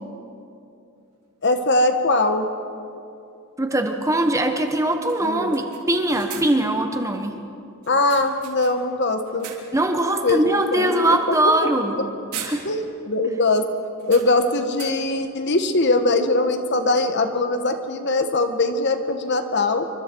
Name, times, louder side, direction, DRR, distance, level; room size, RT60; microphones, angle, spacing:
voice 1, 1.4-2.5 5.2-5.5 7.9-9.5 10.2-11.2 12.6-13.7 14.1-19.8, left 2 dB, 50° left, 8 dB, 1.3 m, -21 dB
sound 1, 1.5-1.6 3.7-3.8 4.1-4.2 4.7-4.8 5.1-6.8 7.8-8.9 9.2-9.9 10.3-10.5 11.8-12.0 12.3-13.1 13.3-13.4 14.0-15.3, right 7 dB, 85° right, 3.4 m, -39 dB
voice 2, 3.6-7.4 9.7-12.0 12.4-12.7, right 1 dB, 15° right, 5 dB, 1.2 m, -21 dB
28.0 x 24.5 x 4.7 m, 2.6 s
head